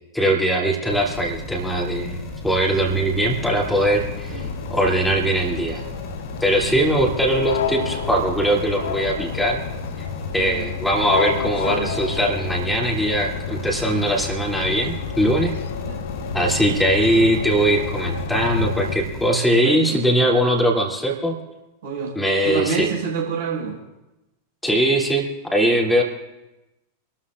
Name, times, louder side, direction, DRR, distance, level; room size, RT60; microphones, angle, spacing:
voice 1, 0.1-2.2 2.4-5.8 6.4-9.6 10.3-15.5 16.3-21.4 22.1-22.9 24.6-26.0, right 1 dB, 5° left, -1 dB, 2.9 m, -21 dB
sound 1, 0.9-19.3, left 2 dB, 30° left, 3.5 m, -35 dB
sound 2, 2.6-19.0, left 7 dB, 60° left, 0.8 m, -30 dB
voice 2, 10.3-10.7 11.3-11.9 15.8-16.0 16.4-16.6 19.6-20.0 21.8-22.1 22.4-23.7, right 5 dB, 60° right, -4 dB, 6.2 m, -28 dB
27.0 x 13.0 x 2.5 m, 1.0 s
figure-of-eight pair, 90°, 0 cm